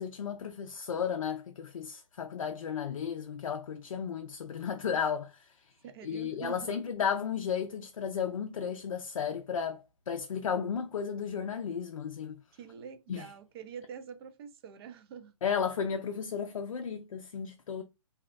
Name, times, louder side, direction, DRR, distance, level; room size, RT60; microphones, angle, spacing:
voice 1, 0.0-5.5 6.0-12.4 13.1-13.3 15.4-17.8, left 7 dB, 90° left, 0.4 m, -34 dB
voice 2, 5.8-6.8 12.6-15.3 15.8-16.0, right 7 dB, 50° right, 0.5 m, -46 dB
2.7 x 2.0 x 2.4 m
hypercardioid pair, 140°, 17 cm